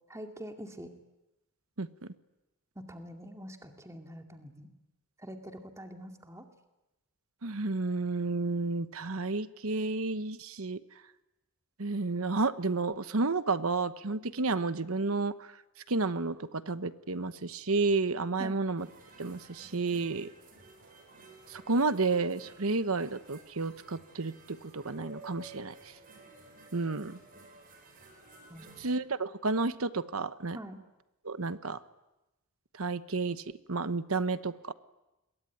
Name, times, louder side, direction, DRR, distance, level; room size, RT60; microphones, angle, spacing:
voice 1, 0.1-0.9 2.8-4.7 5.2-6.5 18.4-18.6 28.5-28.9 30.5-30.8, equal, 15° right, 4 dB, 2.3 m, -45 dB
voice 2, 7.4-10.8 11.8-15.5 15.9-18.9 19.2-20.3 21.5-25.7 26.7-27.2 28.8-30.6 31.2-31.8 32.8-34.7, right 3 dB, 70° right, 13 dB, 1.1 m, -31 dB
sound 1, 18.8-28.9, right 2 dB, 40° right, 6.7 m, -54 dB
27.5 x 22.0 x 9.3 m, 0.97 s
head